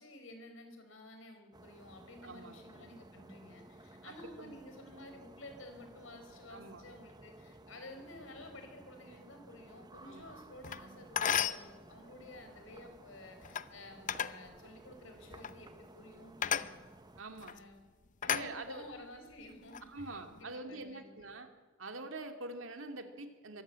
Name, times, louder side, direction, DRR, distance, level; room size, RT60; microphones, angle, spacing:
voice 1, 0.0-16.8 17.4-17.8 18.2-21.3, left 1 dB, 80° left, 6 dB, 4.7 m, -52 dB
sound 1, 1.5-17.2, right 2 dB, 20° right, 0.9 m, -56 dB
voice 2, 2.2-2.6 4.0-4.5 6.5-6.8 10.0-10.3 17.2-17.6 18.3-18.8 19.9-21.5 21.8-23.6, right 2 dB, 75° right, 5 dB, 2.5 m, -45 dB
sound 2, 10.6-10.8 11.2-11.7 13.4-13.7 14.1-14.4 15.3-15.5 16.4-16.7 17.4-17.6 18.2-19.0 19.5-19.8, left 8 dB, 40° left, 0.7 m, -34 dB
23.5 x 14.0 x 8.9 m, 1.4 s
head